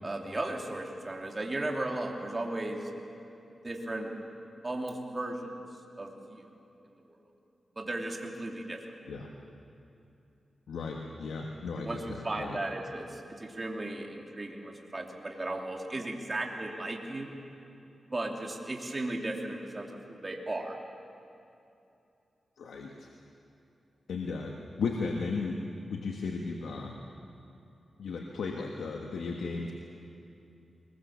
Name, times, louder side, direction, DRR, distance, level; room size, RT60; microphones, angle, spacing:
voice 1, 0.0-2.9 3.6-4.1 4.6-5.6 6.0-6.5 7.1-7.2 7.8-8.8 11.8-17.3 18.1-20.8, right 2 dB, 30° right, 1 dB, 2.9 m, -36 dB
voice 2, 10.7-12.6 22.6-23.1 24.1-25.6 25.9-27.0 28.0-29.7, left 4 dB, 90° left, 1 dB, 1.5 m, -35 dB
22.0 x 21.5 x 7.3 m, 2.7 s
cardioid pair, 65°, 0 cm